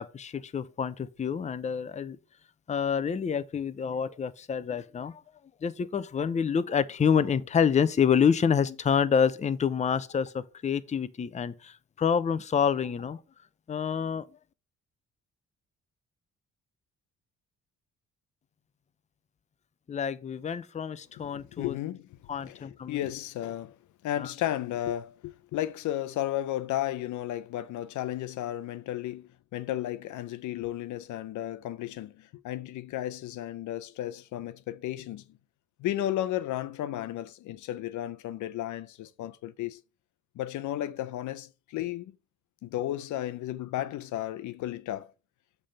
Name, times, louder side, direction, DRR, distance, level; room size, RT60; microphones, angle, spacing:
voice 1, 0.0-2.2 2.7-5.2 5.6-13.2 13.7-14.3 19.9-21.8 22.3-23.0 24.2-24.3, left 7 dB, 25° left, 0.5 m, -27 dB
voice 2, 21.3-23.8 24.0-35.2 35.8-39.8 40.4-42.1 42.6-45.1, left 13 dB, 75° left, 0.6 m, -34 dB
7.5 x 3.4 x 5.0 m
cardioid pair, 90°, 30 cm